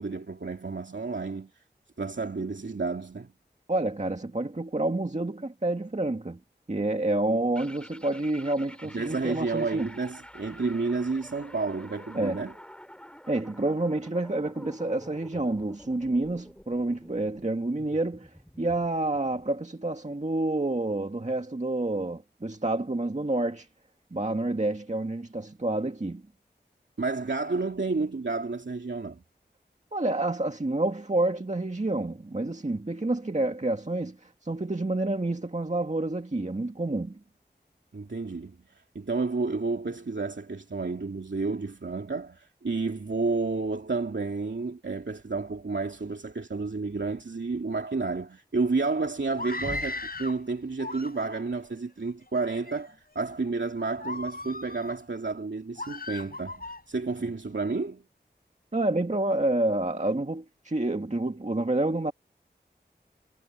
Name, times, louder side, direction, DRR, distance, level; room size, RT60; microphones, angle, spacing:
voice 1, 0.0-1.5 2.0-3.3 8.9-12.5 27.0-29.2 37.9-58.0, right 3 dB, 85° right, 2.7 m, -31 dB
voice 2, 3.7-6.4 6.7-9.9 12.1-12.4 13.3-18.3 18.6-23.7 24.1-26.2 29.9-37.2 58.7-62.1, right 2 dB, 40° right, 1.9 m, -28 dB
sound 1, 7.5-19.6, equal, 5° left, 6.7 m, -49 dB
Screaming, 49.3-50.4 50.8-51.5 52.2-52.8 53.3-53.5 54.0-55.0 55.8-56.8, left 2 dB, 55° left, 4.9 m, -37 dB
wide cardioid pair, 55°, 18 cm